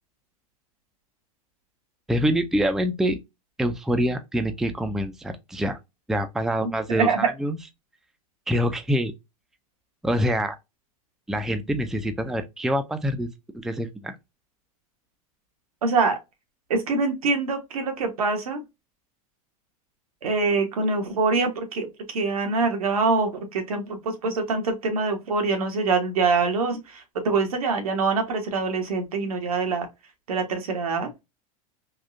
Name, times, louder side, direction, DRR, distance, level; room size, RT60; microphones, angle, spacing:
voice 1, 2.1-3.2 3.6-5.8 6.1-7.6 8.5-9.1 10.0-10.6 11.3-14.2, equal, ahead, 0.4 m, -25 dB
voice 2, 6.9-7.3 15.8-16.2 16.7-18.6 20.2-29.9 30.3-31.1, right 4 dB, 85° right, 1.2 m, -24 dB
3.6 x 2.3 x 2.6 m
hypercardioid pair, 110°, 18 cm